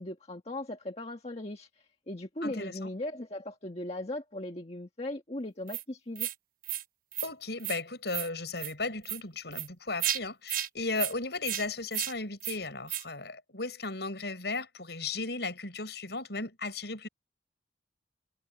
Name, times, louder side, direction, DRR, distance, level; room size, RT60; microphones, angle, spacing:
voice 1, 0.0-1.7 2.1-6.3, left 1 dB, 35° left, 1.7 m, -38 dB
voice 2, 2.4-2.9 7.2-17.1, left 3 dB, 65° left, 6.5 m, -36 dB
sound 1, 5.7-5.8 6.2-6.3 6.6-6.8 7.1-7.3 7.6-7.8 8.1-8.3 8.6-8.7 9.0-9.2 9.5-9.7 10.0-10.2 10.5-10.7 11.0-11.1 11.4-11.6 11.9-12.1 12.4-12.6 12.9-13.0, right 11 dB, 50° right, 1.0 m, -33 dB
head